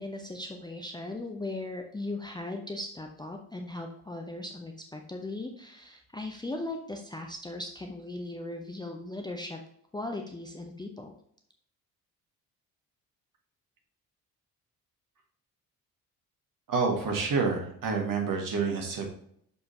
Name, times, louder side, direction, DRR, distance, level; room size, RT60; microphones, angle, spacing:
voice 1, 0.0-9.6 9.9-11.1, left 2 dB, 10° left, 2 dB, 0.7 m, -38 dB
voice 2, 16.7-19.1, right 4 dB, 45° right, 1 dB, 1.7 m, -28 dB
6.6 x 5.5 x 2.8 m, 0.67 s
figure-of-eight pair, 45°, 47 cm